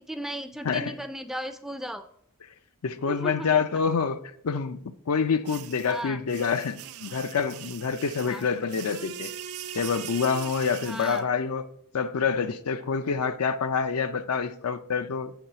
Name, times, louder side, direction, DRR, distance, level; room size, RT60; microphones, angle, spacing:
voice 1, 0.0-2.0 3.1-3.5 5.8-6.2 8.3-8.5 10.8-11.2, equal, ahead, 0.3 m, -35 dB
voice 2, 0.6-0.9 2.8-9.3 9.7-11.7 11.9-15.3, left 5 dB, 80° left, 0.5 m, -27 dB
sound 1, 5.5-11.2, right 10 dB, 85° right, 0.5 m, -41 dB
7.8 x 3.9 x 5.5 m
head